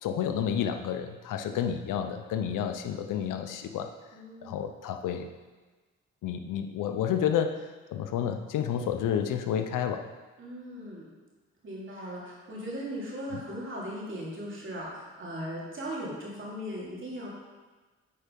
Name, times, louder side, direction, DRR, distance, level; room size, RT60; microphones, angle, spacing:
voice 1, 0.0-3.9 4.4-5.3 6.2-7.6 7.9-10.0 13.3-13.4, left 8 dB, 85° left, 7 dB, 0.7 m, -30 dB
voice 2, 4.1-4.7 10.4-11.1 11.6-17.3, equal, 40° right, -5 dB, 2.9 m, -38 dB
8.8 x 4.8 x 5.3 m, 1.3 s
cardioid pair, 95°, 31 cm